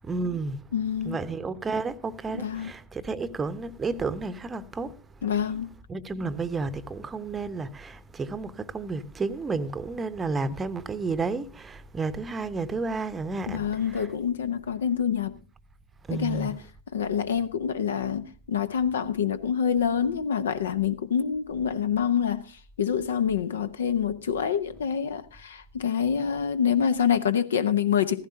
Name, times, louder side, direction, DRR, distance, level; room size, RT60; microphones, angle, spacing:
voice 1, 0.0-0.6 1.0-4.9 5.9-14.1 16.1-16.5, right 4 dB, 15° right, 0.8 m, -31 dB
voice 2, 0.7-1.2 2.3-2.7 5.2-5.7 13.5-15.4 16.1-16.6 16.9-22.4 22.8-28.2, left 8 dB, 65° left, 0.8 m, -26 dB
15.0 x 15.0 x 2.7 m
figure-of-eight pair, 90°, 0 cm